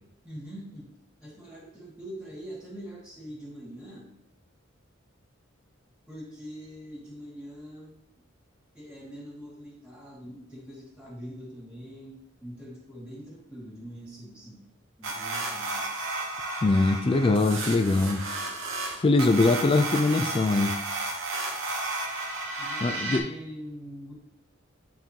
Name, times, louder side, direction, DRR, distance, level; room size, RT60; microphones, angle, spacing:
voice 1, 0.2-0.9 1.2-4.1 6.1-8.0 8.7-14.6 15.0-16.1 22.6-24.1, equal, 5° right, -4 dB, 1.9 m, -43 dB
sound 1, 15.0-23.2, right 2 dB, 80° right, 1.0 m, -33 dB
voice 2, 16.6-18.2 18.9-20.7 22.8-23.2, left 3 dB, 25° left, 8 dB, 0.3 m, -22 dB
9.4 x 3.7 x 2.9 m, 0.82 s
head